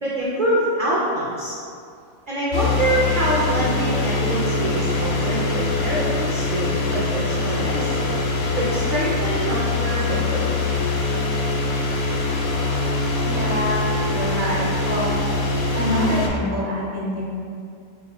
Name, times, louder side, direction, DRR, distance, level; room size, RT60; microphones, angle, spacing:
voice 1, 0.0-1.6 2.3-8.2 8.5-10.5, right 1 dB, 50° right, -7 dB, 0.6 m, -25 dB
sound 1, 2.5-16.3, left 3 dB, 85° left, 1.1 m, -23 dB
voice 2, 13.3-15.1 15.7-17.2, equal, 15° right, -7 dB, 0.8 m, -25 dB
6.5 x 2.9 x 2.3 m, 2.4 s
omnidirectional pair, 1.4 m